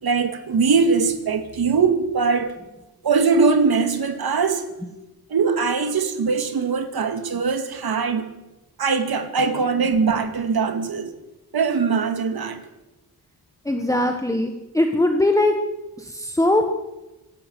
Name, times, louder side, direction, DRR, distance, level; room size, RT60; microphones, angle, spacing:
voice 1, 0.0-2.6 3.0-4.6 5.3-8.3 8.8-11.1 11.5-12.6, right 5 dB, 70° right, 2.5 m, -21 dB
voice 2, 13.6-15.5 16.0-16.8, left 1 dB, 10° left, 1.4 m, -21 dB
26.5 x 13.0 x 8.2 m
wide cardioid pair, 175°, 38 cm